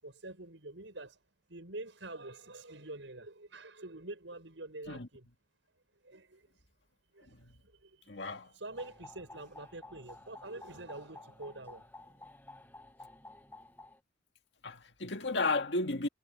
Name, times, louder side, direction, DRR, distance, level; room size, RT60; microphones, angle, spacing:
voice 1, 0.0-1.2 1.5-5.3 6.0-6.4 7.1-11.8, right 2 dB, 85° right, 6.2 m, -46 dB
voice 2, 8.1-8.5 14.6-16.1, left 3 dB, 70° left, 1.9 m, -33 dB
sound 1, 8.7-14.0, left 2 dB, 10° left, 1.5 m, -53 dB
head